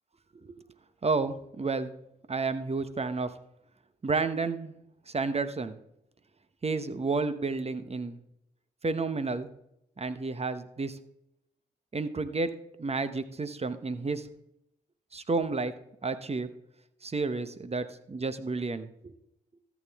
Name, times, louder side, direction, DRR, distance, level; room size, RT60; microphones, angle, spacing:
voice 1, 1.0-1.9 2.3-3.3 4.0-4.7 5.1-5.7 6.6-8.2 8.8-9.5 10.0-11.0 11.9-12.5 12.8-14.3 15.1-15.7 16.0-16.5 17.0-19.1, right 3 dB, 30° right, 12 dB, 1.0 m, -31 dB
14.0 x 7.2 x 3.5 m, 0.80 s
supercardioid pair, 45°, 19 cm